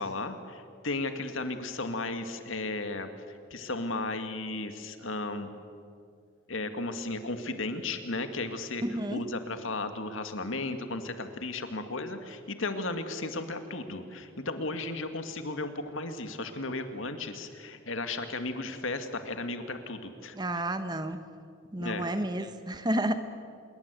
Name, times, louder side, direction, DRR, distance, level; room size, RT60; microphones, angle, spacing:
voice 1, 0.0-3.1 3.5-5.5 6.5-20.6 21.8-22.1, left 2 dB, 75° left, 8 dB, 2.1 m, -35 dB
voice 2, 8.9-9.2 20.3-21.2 21.7-23.2, right 1 dB, 20° right, 9 dB, 1.1 m, -31 dB
26.5 x 22.5 x 8.3 m, 2.3 s
head